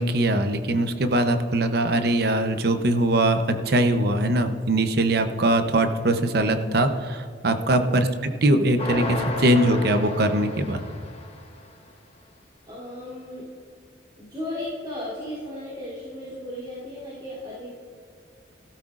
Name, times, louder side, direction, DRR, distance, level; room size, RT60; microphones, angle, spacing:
voice 1, 0.0-10.8, right 1 dB, 55° right, 7 dB, 0.8 m, -22 dB
voice 2, 7.6-8.0 12.7-13.5 14.2-17.7, left 1 dB, 25° right, -9 dB, 3.1 m, -35 dB
sound 1, 8.8-11.5, left 2 dB, 35° left, 1.3 m, -32 dB
16.0 x 13.5 x 2.5 m, 2.2 s
head